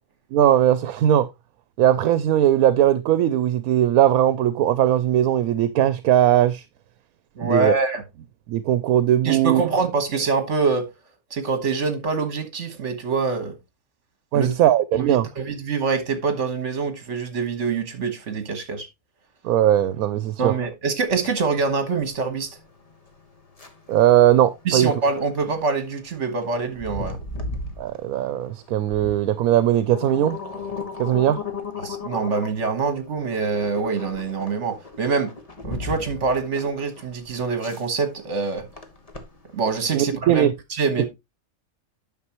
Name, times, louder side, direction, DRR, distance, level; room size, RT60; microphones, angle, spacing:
voice 1, 0.3-1.3 1.8-6.6 7.4-7.7 8.5-9.6 14.3-15.3 19.4-20.5 23.9-24.9 27.8-30.4 31.0-31.4 39.9-40.5 41.0-41.1, right 11 dB, 85° right, 1.1 m, -19 dB
voice 2, 7.4-8.0 9.2-10.9 11.3-13.5 14.3-14.5 14.9-18.9 20.4-22.5 24.7-27.2 31.8-35.3 35.6-38.7 39.5-41.0, right 4 dB, 55° right, 1.7 m, -25 dB
sound 1, 21.0-39.8, left 3 dB, 25° left, 1.3 m, -37 dB
9.5 x 6.4 x 3.0 m
omnidirectional pair, 1.5 m